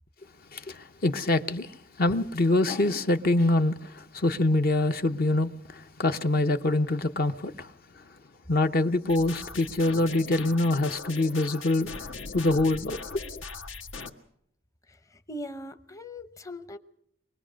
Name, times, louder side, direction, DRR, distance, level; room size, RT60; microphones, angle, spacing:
voice 1, 0.5-1.7 2.0-7.7 8.5-11.9 12.3-13.2, left 2 dB, 50° left, 0.8 m, -25 dB
sound 1, 9.1-14.1, left 4 dB, 85° left, 1.6 m, -40 dB
voice 2, 14.9-16.8, left 1 dB, 15° left, 0.7 m, -40 dB
24.0 x 19.5 x 6.3 m
head